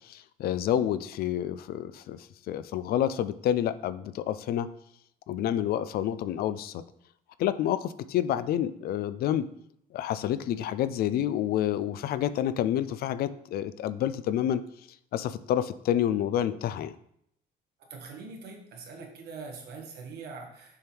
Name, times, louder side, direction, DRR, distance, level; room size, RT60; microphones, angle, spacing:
voice 1, 0.1-2.2 2.5-4.7 5.3-6.8 7.4-9.4 9.9-14.6 15.1-16.9, left 11 dB, 65° left, 14 dB, 0.4 m, -28 dB
voice 2, 17.9-20.8, right 4 dB, 70° right, 2 dB, 1.5 m, -43 dB
7.0 x 3.5 x 4.4 m, 0.72 s
cardioid pair, 110°, 17 cm